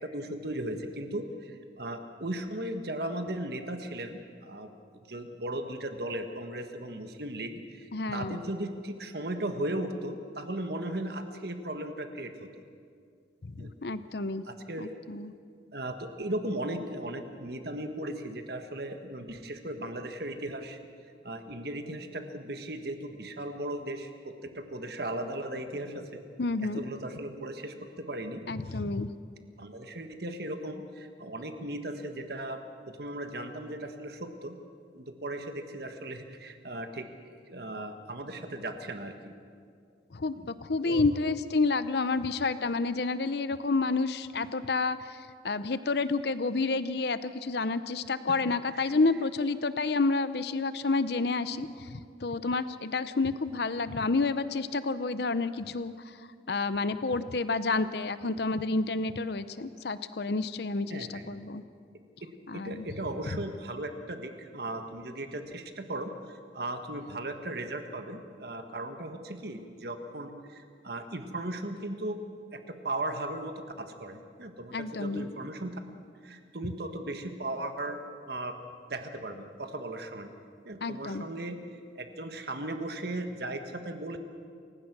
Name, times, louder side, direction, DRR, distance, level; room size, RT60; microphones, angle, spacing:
voice 1, 0.0-4.7 5.1-12.5 13.6-13.7 14.4-14.9 15.7-20.8 21.2-26.2 26.6-28.8 29.6-34.6 34.9-37.1 37.5-39.3 40.3-40.5 40.8-41.0 48.3-48.4 48.7-48.9 60.9-61.3 62.5-72.2 72.5-75.8 76.2-78.6 78.9-80.3 80.6-81.6 81.9-84.2, right 1 dB, 55° right, 6 dB, 1.5 m, -37 dB
voice 2, 7.9-8.4 13.6-14.4 14.8-15.3 26.4-26.8 28.5-29.1 40.1-55.9 56.5-61.6 62.5-62.9 74.7-75.3 80.8-81.2, left 3 dB, 60° left, 13 dB, 0.7 m, -29 dB
28.5 x 16.0 x 6.1 m, 2.3 s
head